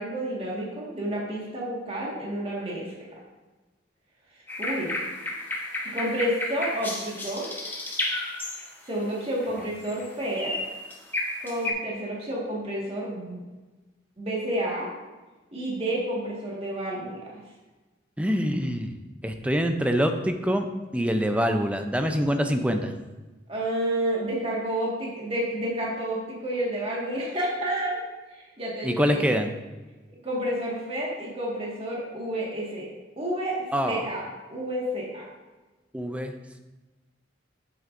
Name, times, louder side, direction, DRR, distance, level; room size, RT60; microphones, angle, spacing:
voice 1, 0.0-3.1 4.6-4.9 5.9-7.5 8.9-10.5 11.4-13.4 14.2-14.9 15.5-17.4 23.5-28.0 28.3-29.3 30.2-32.9 33.2-34.2 34.5-35.3, right 1 dB, 30° right, -4 dB, 1.7 m, -30 dB
sound 1, 4.5-9.0 9.4-10.1 10.4-11.7, left 2 dB, 10° left, 1.1 m, -32 dB
voice 2, 18.2-20.7 20.9-23.0 28.8-29.5 33.7-34.1 35.9-36.3, equal, 5° right, 6 dB, 0.5 m, -25 dB
9.2 x 8.2 x 2.6 m, 1.2 s
head